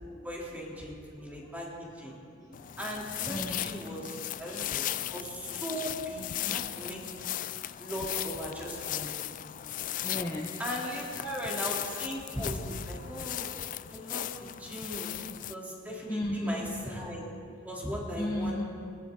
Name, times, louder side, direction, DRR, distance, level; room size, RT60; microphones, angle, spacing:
voice 1, 0.2-2.2 2.8-7.0 7.8-9.1 10.6-12.6 12.9-13.5 13.9-15.1 15.5-17.2 17.6-18.6, equal, 10° right, -4 dB, 3.2 m, -38 dB
voice 2, 0.8-2.8 3.3-3.7 6.7-7.9 8.9-9.0 10.0-10.6 11.0-11.4 11.7-11.8 13.0-14.7 15.1-15.5 16.0-17.1 18.1-18.6, left 1 dB, 20° left, -2 dB, 1.0 m, -39 dB
sound 1, 2.5-15.5, left 13 dB, 40° left, 0.3 m, -37 dB
20.5 x 18.0 x 3.8 m, 2.3 s
head